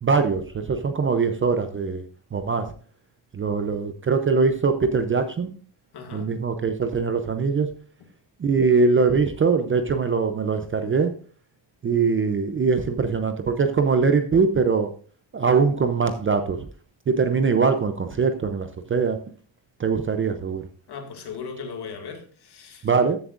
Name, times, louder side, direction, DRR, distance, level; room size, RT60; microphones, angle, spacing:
voice 1, 0.0-2.0 2.3-2.6 3.3-5.5 6.1-7.7 8.4-11.1 11.8-14.9 15.3-16.6 17.1-19.2 19.8-20.6 22.8-23.2, right 5 dB, 25° right, 0.5 m, -22 dB
voice 2, 5.9-6.3 20.9-22.9, left 5 dB, 50° left, 2.0 m, -37 dB
14.0 x 7.3 x 2.5 m
cardioid pair, 150°, 50 cm